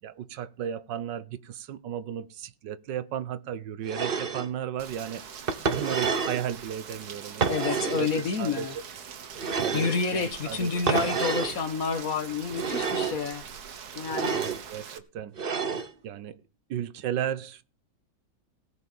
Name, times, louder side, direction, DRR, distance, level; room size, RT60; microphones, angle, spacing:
voice 1, 0.0-5.2 5.6-7.6 8.0-8.8 9.6-11.3 14.3-15.4 16.0-16.4 16.7-17.6, right 9 dB, 75° right, 1.5 m, -35 dB
sound 1, 3.9-4.5 5.5-6.5 7.4-8.1 9.4-10.0 10.9-11.6 12.5-13.2 14.1-14.6 15.4-15.9, right 5 dB, 40° right, 0.9 m, -28 dB
Rain, 4.8-15.0, right 7 dB, 60° right, 1.7 m, -43 dB
voice 2, 7.5-8.8 9.7-13.4 14.0-14.4, left 5 dB, 55° left, 1.6 m, -29 dB
18.0 x 6.5 x 7.0 m
omnidirectional pair, 2.0 m